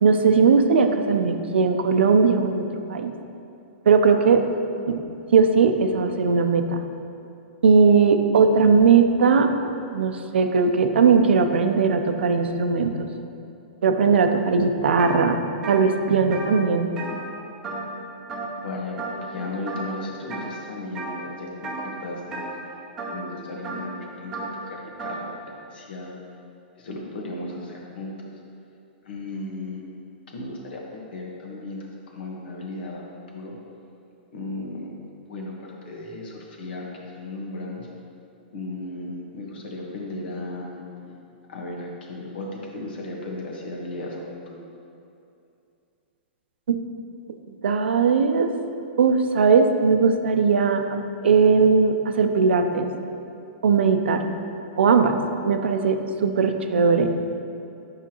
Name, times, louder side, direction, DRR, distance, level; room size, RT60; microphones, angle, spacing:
voice 1, 0.0-2.6 2.9-3.1 3.9-4.4 4.9-5.0 5.3-6.8 7.6-9.5 9.9-13.1 13.8-15.4 15.7-16.9 46.7-46.8 47.6-48.5 49.0-52.9 53.6-54.2 54.8-55.2 55.4-57.1, right 5 dB, 85° right, 7 dB, 0.6 m, -19 dB
sound 1, 15.0-15.2 15.5-18.0 18.3-18.7 19.0-19.3 19.7-20.5 21.0-21.3 21.6-25.2, right 2 dB, 10° right, 0.7 m, -34 dB
voice 2, 18.6-22.4 23.1-24.4 24.7-25.2 25.7-26.1 26.8-28.1 29.0-29.8 30.3-33.0 33.3-33.5 34.3-34.9 35.3-37.9 38.5-40.8 41.1-41.2 41.5-44.6, left 2 dB, 65° left, -1 dB, 1.5 m, -35 dB
9.4 x 5.8 x 3.0 m, 2.6 s
hypercardioid pair, 170°, 6 cm